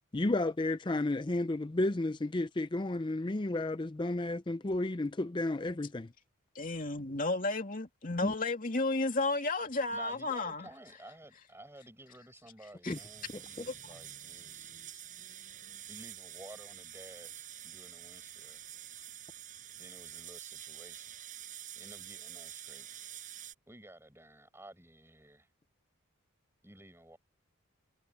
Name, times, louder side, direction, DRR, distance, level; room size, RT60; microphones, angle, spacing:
voice 1, 0.1-6.1 8.2-8.3 12.9-13.0, left 2 dB, 20° left, 0.5 m, -32 dB
voice 2, 6.5-10.7 12.8-13.0 13.7-13.8, left 2 dB, 40° left, 2.8 m, -32 dB
voice 3, 9.9-14.7 15.9-18.6 19.8-21.4 21.7-22.9 23.7-25.5 26.6-27.2, right 1 dB, 10° right, 5.0 m, -54 dB
sound 1, 12.9-23.5, right 11 dB, 35° right, 7.5 m, -47 dB
head